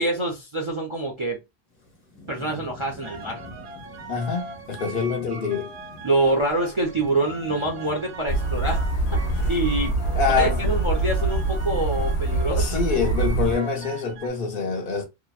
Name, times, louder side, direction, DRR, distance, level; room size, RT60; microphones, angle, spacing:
voice 1, 0.0-1.4 2.3-3.4 6.0-8.9 9.3-9.9 10.3-12.7, right 2 dB, 40° right, 0.5 m, -25 dB
Thunderstorm / Rain, 1.7-14.0, left 1 dB, 40° left, 1.1 m, -46 dB
sound 1, 3.0-14.3, right 3 dB, 70° right, 0.8 m, -41 dB
voice 2, 4.1-5.7 10.2-10.6 12.5-15.0, left 5 dB, 60° left, 0.9 m, -25 dB
sound 2, 8.3-13.6, right 2 dB, 90° left, 0.9 m, -24 dB
2.8 x 2.1 x 2.3 m
omnidirectional pair, 1.1 m